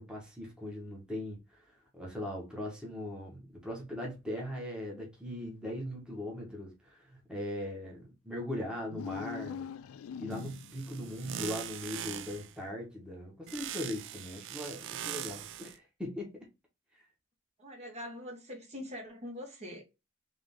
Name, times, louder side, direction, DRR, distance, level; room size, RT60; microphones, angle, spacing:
voice 1, 0.0-9.7 10.2-16.5 16.9-17.0, left 1 dB, 5° right, 1.3 m, -40 dB
sound 1, 8.8-10.9, left 7 dB, 85° left, 0.3 m, -42 dB
sound 2, 10.3-12.5 13.5-15.8, right 10 dB, 60° right, 0.4 m, -41 dB
voice 2, 17.6-19.8, left 1 dB, 30° right, 1.3 m, -43 dB
3.7 x 3.3 x 3.6 m
head